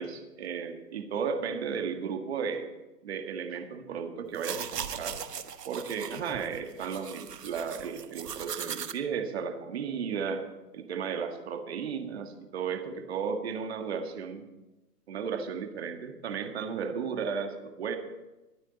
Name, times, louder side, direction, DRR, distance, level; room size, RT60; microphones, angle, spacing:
voice 1, 0.0-2.7 3.0-5.2 5.6-10.4 10.7-14.5 15.1-18.0, right 6 dB, 40° right, 6 dB, 1.7 m, -34 dB
sound 1, 4.3-8.9, right 8 dB, 85° right, 1.3 m, -39 dB
22.5 x 9.1 x 4.1 m, 1.1 s
hypercardioid pair, 165°, 47 cm